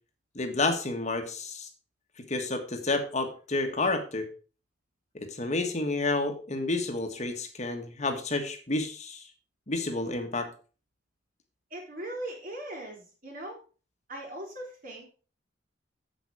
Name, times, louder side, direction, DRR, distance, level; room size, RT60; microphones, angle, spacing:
voice 1, 0.3-1.7 2.3-4.3 5.1-9.2 9.7-10.5, left 2 dB, 40° left, 6 dB, 1.4 m, -30 dB
voice 2, 11.7-13.6 14.1-15.1, right 1 dB, 50° right, 0 dB, 4.0 m, -39 dB
8.6 x 7.7 x 4.8 m, 0.37 s
head